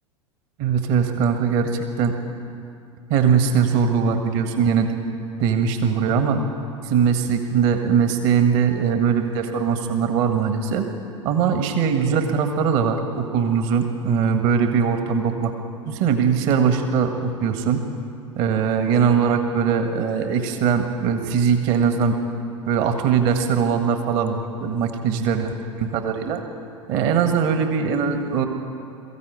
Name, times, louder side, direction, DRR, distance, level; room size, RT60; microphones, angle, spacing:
voice 1, 0.6-2.1 3.1-4.9 5.4-6.4 6.8-10.8 11.2-15.5 15.9-17.8 18.4-22.2 22.7-26.4 26.9-28.5, right 6 dB, 50° right, 6 dB, 1.7 m, -21 dB
23.0 x 15.0 x 8.2 m, 2.6 s
figure-of-eight pair, 80°, 16 cm